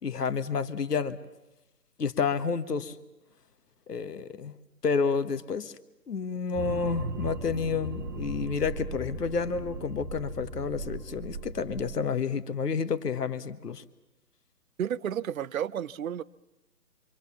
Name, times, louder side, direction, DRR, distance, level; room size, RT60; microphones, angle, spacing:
voice 1, 0.0-1.2 2.0-2.9 3.9-4.6 4.8-5.7 6.1-13.8, left 5 dB, 80° left, 1.6 m, -30 dB
sound 1, 6.5-12.0, right 2 dB, 15° right, 0.9 m, -37 dB
voice 2, 14.8-16.2, right 9 dB, 60° right, 0.8 m, -31 dB
26.5 x 25.0 x 7.2 m
hypercardioid pair, 155°, 47 cm